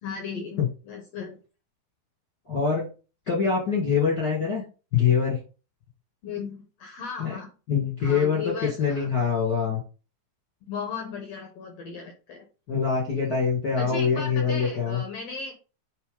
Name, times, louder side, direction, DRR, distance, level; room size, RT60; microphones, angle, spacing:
voice 1, 0.0-1.4 6.2-7.5 8.0-9.1 10.7-12.5 13.8-15.5, left 5 dB, 80° left, 2 dB, 1.4 m, -36 dB
voice 2, 2.5-2.9 3.3-4.6 4.9-5.4 7.2-7.3 7.7-9.8 12.7-15.0, left 6 dB, 45° left, -3 dB, 1.3 m, -24 dB
8.8 x 3.6 x 3.8 m, 0.34 s
omnidirectional pair, 4.5 m